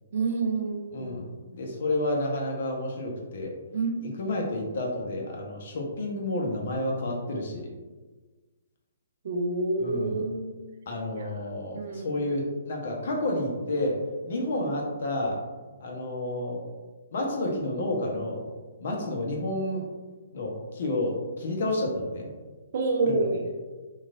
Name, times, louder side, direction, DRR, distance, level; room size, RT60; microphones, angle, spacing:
voice 1, 0.1-1.2 3.7-4.0 9.2-10.6 11.1-11.3 11.7-12.1 22.7-23.4, right 3 dB, 55° right, 3 dB, 0.4 m, -28 dB
voice 2, 0.9-1.3 1.5-3.5 4.2-7.7 9.8-10.2 10.9-14.0 14.3-15.4 15.8-16.6 17.1-18.4 18.8-19.8 20.3-22.3 23.0-23.2, left 1 dB, 55° left, -1 dB, 0.7 m, -30 dB
3.1 x 2.3 x 2.4 m, 1.3 s
figure-of-eight pair, 130°, 0 cm